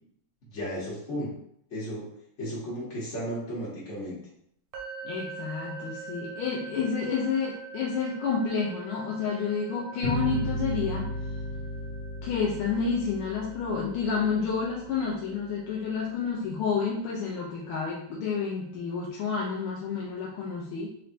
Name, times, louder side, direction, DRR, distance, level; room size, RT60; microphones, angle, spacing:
voice 1, 0.5-1.3 1.7-2.1 2.4-4.2, equal, 45° left, -8 dB, 1.1 m, -34 dB
sound 1, 4.7-18.6, right 5 dB, 85° right, 1.5 m, -45 dB
voice 2, 5.0-11.1 12.2-20.9, left 5 dB, 85° left, -4 dB, 1.5 m, -30 dB
sound 2, 10.0-15.2, equal, 45° right, 0.9 m, -34 dB
4.2 x 3.2 x 2.5 m, 0.70 s
omnidirectional pair, 2.3 m